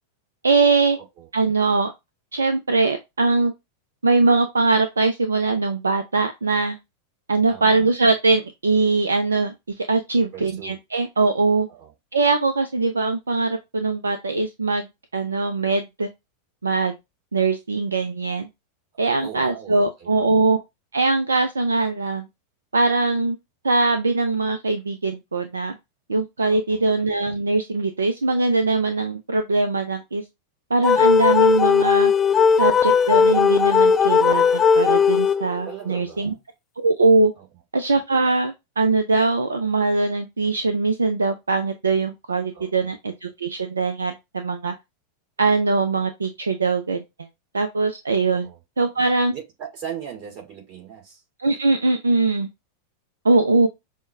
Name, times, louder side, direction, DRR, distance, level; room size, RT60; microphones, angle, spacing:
voice 1, 0.4-1.0 1.3-1.9 2.3-3.5 4.0-6.8 7.3-11.7 12.1-14.9 15.1-16.1 16.6-17.0 17.3-18.5 19.0-20.6 20.9-22.3 22.7-23.4 23.6-25.8 26.1-30.2 30.7-32.1 32.6-36.3 36.8-37.3 37.7-44.7 45.4-47.0 47.5-48.5 48.8-49.3 51.4-52.5 53.2-53.7, right 3 dB, 75° right, 0.4 m, -21 dB
voice 2, 1.0-1.3 7.5-7.9 10.2-10.8 11.7-11.9 19.2-20.2 26.4-26.8 35.6-36.4 37.4-37.5 42.5-42.9 48.3-51.2, right 9 dB, 45° right, 2.5 m, -39 dB
sound 1, 30.8-35.7, left 6 dB, 20° left, 0.3 m, -17 dB
6.2 x 2.1 x 2.4 m
figure-of-eight pair, 90°, 0 cm